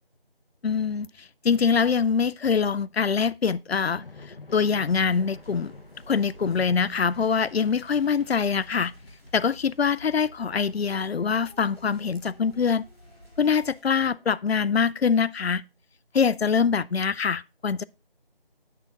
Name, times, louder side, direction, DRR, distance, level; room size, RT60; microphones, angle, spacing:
voice 1, 0.6-4.0 4.5-5.7 6.1-8.9 9.3-12.9 13.4-15.6 16.1-17.8, left 6 dB, 80° left, 0.5 m, -24 dB
sound 1, 3.8-14.3, left 3 dB, 65° left, 1.0 m, -50 dB
sound 2, 4.7-13.8, equal, 15° right, 2.9 m, -52 dB
9.8 x 6.7 x 3.7 m
figure-of-eight pair, 180°, 30 cm